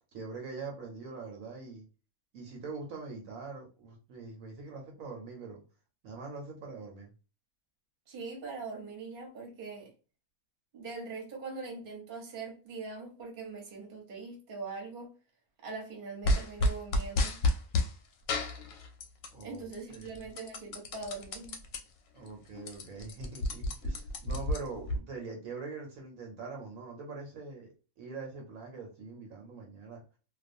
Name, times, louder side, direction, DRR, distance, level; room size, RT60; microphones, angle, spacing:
voice 1, 0.1-1.8 2.3-5.6 6.0-7.1 19.3-20.2 22.1-30.0, right 4 dB, 70° right, 1.1 m, -43 dB
voice 2, 8.1-9.9 10.7-15.1 15.6-17.4 19.4-21.6, right 4 dB, 40° right, 1.0 m, -42 dB
sound 1, 16.2-17.9 18.3-19.4 19.7-21.8 22.2-22.3 22.5-25.0, left 2 dB, 70° left, 0.9 m, -30 dB
2.4 x 2.3 x 2.5 m
omnidirectional pair, 1.6 m